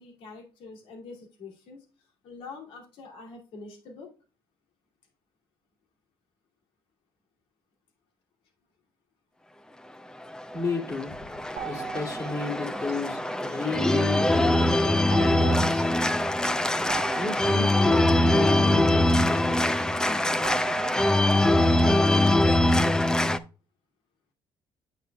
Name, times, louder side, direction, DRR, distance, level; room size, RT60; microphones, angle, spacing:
voice 1, 0.0-1.9 2.2-4.1, left 4 dB, 75° left, 2 dB, 2.7 m, -45 dB
Organ, 10.2-23.4, left 1 dB, 5° left, 0.5 m, -23 dB
voice 2, 10.5-11.2 11.6-15.9 17.1-19.9, left 3 dB, 40° left, 1 dB, 2.8 m, -33 dB
sound 1, 11.6-14.3 15.1-19.7 20.4-22.2, right 8 dB, 80° right, 1.1 m, -40 dB
8.4 x 7.6 x 2.3 m, 0.33 s
cardioid pair, 110°, 9 cm